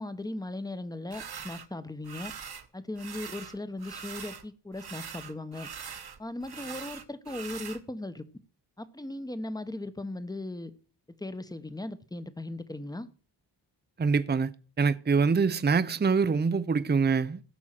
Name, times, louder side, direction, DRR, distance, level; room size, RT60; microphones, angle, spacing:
voice 1, 0.0-2.3 2.7-5.7 6.2-8.2 8.8-10.7 11.2-13.1, left 2 dB, 10° left, 0.9 m, -38 dB
sound 1, 1.1-1.7 2.0-2.7 3.0-4.5 4.7-7.8, right 7 dB, 60° right, 1.3 m, -42 dB
voice 2, 14.0-14.5 14.8-17.4, right 5 dB, 25° right, 0.6 m, -24 dB
16.0 x 6.2 x 7.6 m
wide cardioid pair, 125°, 44 cm